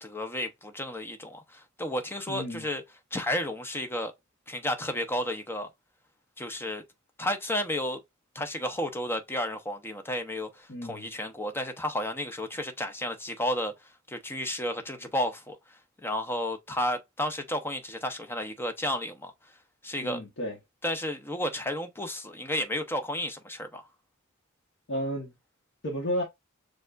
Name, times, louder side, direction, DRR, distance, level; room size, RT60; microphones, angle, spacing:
voice 1, 0.0-2.8 3.1-4.1 4.5-5.7 6.4-6.8 7.2-8.0 8.3-13.7 14.1-19.3 19.8-20.2 20.8-23.9, left 1 dB, 10° left, 0.7 m, -32 dB
voice 2, 2.3-2.7 10.7-11.1 20.0-20.6 24.9-25.3 25.8-26.2, equal, 60° left, 1.0 m, -32 dB
6.7 x 2.4 x 2.4 m
head